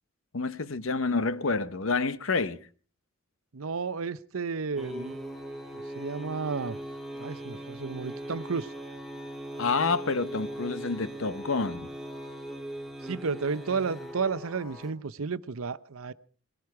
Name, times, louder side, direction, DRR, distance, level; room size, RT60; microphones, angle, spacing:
voice 1, 0.3-2.6 9.6-11.9, left 4 dB, 70° left, 0.9 m, -28 dB
voice 2, 3.5-5.2 5.7-6.8 7.1-8.7 13.0-16.1, right 5 dB, 80° right, 0.7 m, -32 dB
sound 1, 4.8-14.9, right 1 dB, ahead, 1.8 m, -40 dB
20.0 x 15.0 x 4.8 m
head